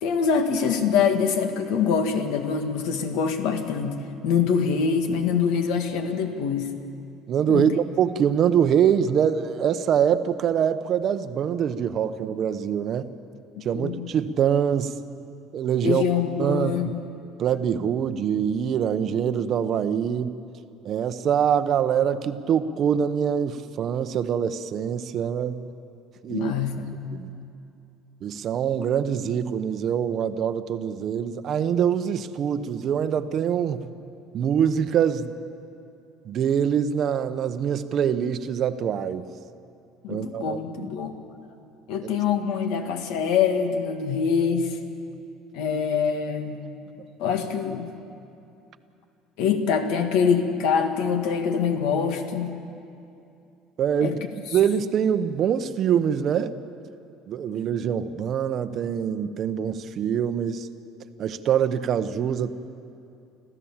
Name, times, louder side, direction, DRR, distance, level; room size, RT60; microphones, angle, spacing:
voice 1, 0.0-4.0 4.2-6.7 7.5-7.7 13.7-14.0 15.8-17.0 26.3-26.9 40.0-41.2 41.9-44.8 45.5-46.6 47.2-47.9 49.4-52.6 54.0-54.2, left 6 dB, 70° left, 6 dB, 1.9 m, -24 dB
voice 2, 7.3-13.1 13.6-14.9 15.5-16.0 16.4-16.9 17.4-20.4 20.8-25.7 26.2-26.5 27.1-27.3 28.2-33.9 34.3-35.3 36.2-39.3 40.1-40.9 53.8-54.2 54.5-56.6 57.3-60.7 61.2-62.5, right 8 dB, 40° right, 11 dB, 0.8 m, -24 dB
26.5 x 15.0 x 7.3 m, 2.6 s
cardioid pair, 155°, 0 cm